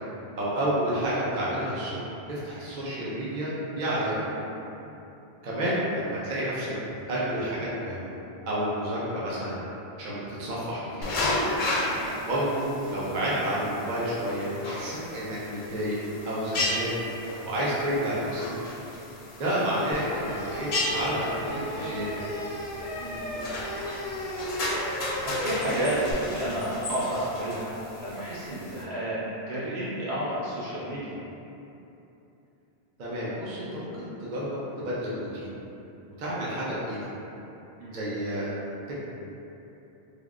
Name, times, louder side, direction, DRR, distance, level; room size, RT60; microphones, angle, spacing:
voice 1, 0.4-4.3 5.4-6.7 7.1-8.1 8.5-9.6 10.0-11.1 12.3-16.0 16.2-16.9 17.4-18.5 19.4-22.2 33.0-35.5 36.2-37.1 37.9-38.5 38.9-39.0, equal, 55° right, -8 dB, 0.6 m, -30 dB
voice 2, 4.1-4.4 11.8-12.1 23.0-24.0 24.8-31.2 37.8-38.0, right 1 dB, 75° right, -10 dB, 1.2 m, -32 dB
sound 1, 11.0-28.8, left 1 dB, 60° left, 0.6 m, -34 dB
sound 2, 19.9-26.1, equal, 90° left, 0.8 m, -35 dB
3.4 x 2.3 x 2.3 m, 2.9 s
omnidirectional pair, 1.1 m